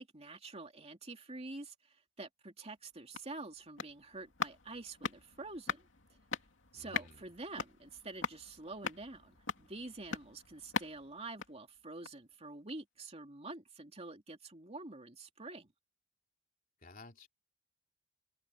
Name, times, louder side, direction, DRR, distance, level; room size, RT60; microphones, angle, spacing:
voice 1, 0.0-5.9 6.7-15.7, right 2 dB, 30° right, 3.0 m, -47 dB
sound 1, 2.8-12.3 12.7-12.8, left 5 dB, 65° left, 2.9 m, -43 dB
voice 2, 6.7-7.2 16.8-17.3, left 2 dB, 45° left, 3.2 m, -54 dB
head